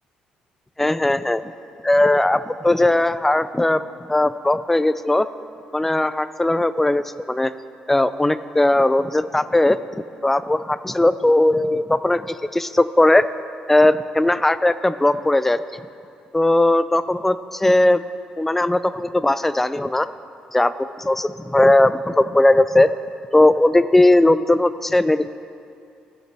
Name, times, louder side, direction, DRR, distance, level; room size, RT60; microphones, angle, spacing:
voice 1, 0.8-1.4 1.8-3.8 4.1-5.3 5.7-7.5 7.9-9.8 10.2-13.3 13.7-15.6 16.3-18.0 18.4-20.1 20.5-22.9 23.3-25.3, left 1 dB, 10° left, 14 dB, 0.3 m, -18 dB
17.5 x 6.5 x 3.4 m, 2.5 s
cardioid pair, 105°, 3 cm